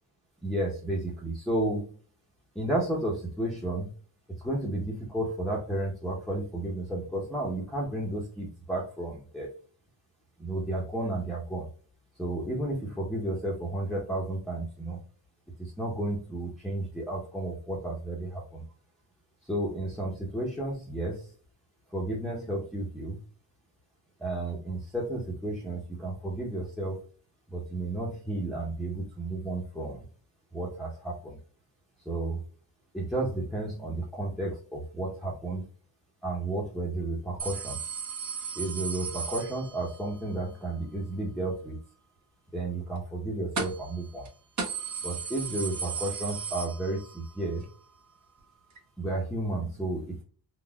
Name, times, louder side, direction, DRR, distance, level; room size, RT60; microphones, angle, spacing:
voice 1, 0.4-1.9 2.5-3.9 4.4-9.5 10.4-11.7 12.2-15.0 15.6-18.6 19.5-21.3 21.9-23.2 24.2-27.0 27.5-30.0 30.5-31.4 32.0-32.4 32.9-35.6 36.2-37.8 38.6-41.8 42.5-44.3 45.0-47.7 49.0-50.2, right 1 dB, ahead, -5 dB, 0.9 m, -32 dB
sound 1, 37.4-40.1 43.6-44.0 44.2-44.3 44.6-47.3 47.6-47.7 48.8-48.9, right 5 dB, 40° right, 1.1 m, -35 dB
3.9 x 2.4 x 2.3 m, 0.42 s
cardioid pair, 100°, 44 cm